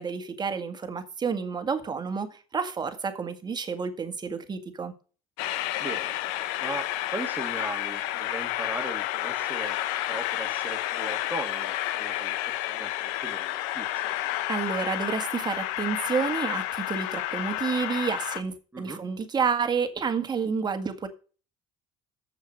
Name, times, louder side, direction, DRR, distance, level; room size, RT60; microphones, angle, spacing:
voice 1, 0.0-4.9 14.5-21.1, right 5 dB, 30° right, 1.8 m, -30 dB
Train, 5.4-18.4, left 14 dB, 80° left, 0.8 m, -30 dB
voice 2, 5.8-6.2 6.6-9.8 10.1-12.4 12.7-14.1 18.7-19.0, right 2 dB, 15° right, 2.3 m, -38 dB
7.7 x 6.7 x 6.5 m
supercardioid pair, 85°, 14 cm